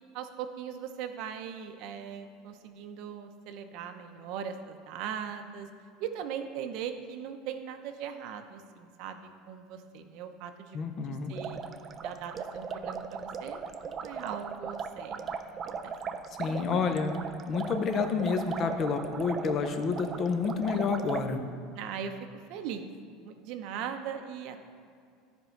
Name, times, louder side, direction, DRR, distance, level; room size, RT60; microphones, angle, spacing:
voice 1, 0.1-5.7 6.0-9.2 9.5-10.8 11.3-11.6 12.0-15.3 15.7-16.2 21.7-22.9 23.2-24.6, right 8 dB, 50° right, 7 dB, 0.7 m, -39 dB
voice 2, 10.7-11.3 16.4-17.2 17.5-21.4, left 5 dB, 30° left, 7 dB, 0.7 m, -29 dB
sound 1, 11.3-21.2, right 6 dB, 25° right, 0.4 m, -38 dB
14.0 x 5.4 x 4.5 m, 2.4 s
cardioid pair, 175°, 0 cm